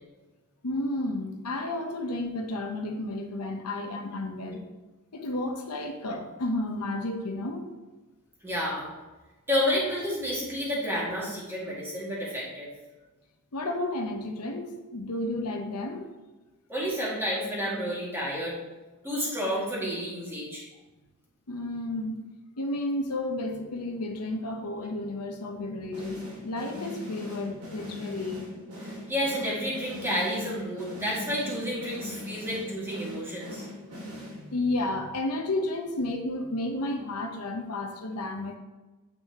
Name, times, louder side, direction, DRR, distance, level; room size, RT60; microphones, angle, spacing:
voice 1, 0.6-4.6 5.1-7.7 13.5-16.1 21.5-22.2 22.6-28.5 33.8-38.6, left 2 dB, 85° left, 4 dB, 0.9 m, -32 dB
voice 2, 8.4-8.9 9.5-12.7 16.7-18.6 19.0-20.7 28.8-33.6, equal, 10° right, -6 dB, 2.1 m, -30 dB
sound 1, 25.9-34.7, left 1 dB, 85° right, 2.4 m, -40 dB
8.5 x 5.7 x 2.9 m, 1.2 s
head